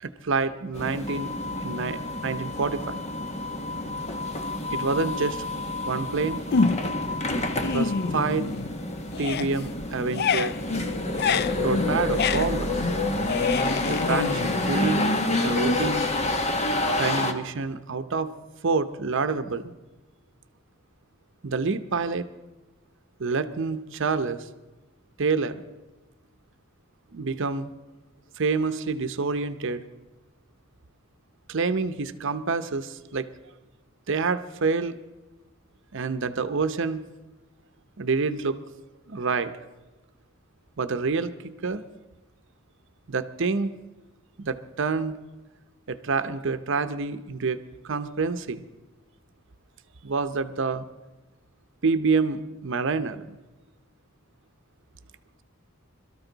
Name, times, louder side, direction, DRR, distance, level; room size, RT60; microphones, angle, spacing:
voice 1, 0.0-1.3 1.6-3.0 4.7-5.4 5.9-6.4 7.6-8.5 9.2-10.6 11.6-12.7 13.9-15.1 15.4-16.0 17.0-18.3 18.6-19.7 21.4-22.3 23.2-24.4 25.2-25.6 27.1-27.7 28.4-29.8 31.5-33.3 34.1-35.0 35.9-37.0 38.0-38.6 39.1-39.5 40.8-41.8 43.1-43.7 44.4-45.2 45.9-47.6 47.8-48.6 50.0-50.8 51.8-53.2, right 4 dB, 65° right, 11 dB, 0.7 m, -27 dB
sound 1, 0.7-17.3, left 2 dB, 35° left, 1.1 m, -28 dB
sound 2, 6.5-7.1 7.4-8.8 9.1-15.6, left 5 dB, 50° left, 0.4 m, -28 dB
22.5 x 13.0 x 3.9 m, 1.1 s
head